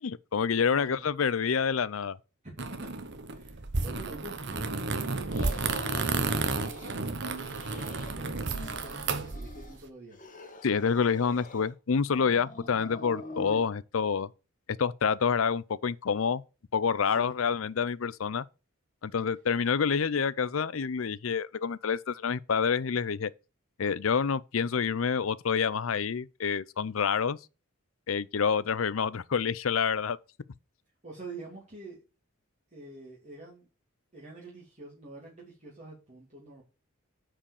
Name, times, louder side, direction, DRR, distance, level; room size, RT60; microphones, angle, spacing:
voice 1, 0.0-2.2 10.6-14.3 14.8-16.4 16.7-18.4 19.0-23.3 23.8-27.4 28.1-30.2, left 6 dB, 80° left, 0.5 m, -28 dB
voice 2, 0.5-1.1 2.4-2.9 3.3-7.2 7.5-10.2 17.0-17.3 31.0-32.0 32.7-33.7 34.1-36.6, right 2 dB, 35° right, 2.9 m, -47 dB
sound 1, 2.6-9.7, right 3 dB, 60° right, 1.2 m, -32 dB
sound 2, 5.3-7.0 7.3-8.1 8.4-9.8 10.1-11.7 12.1-13.6, left 2 dB, 40° left, 1.9 m, -45 dB
8.6 x 5.1 x 6.6 m
head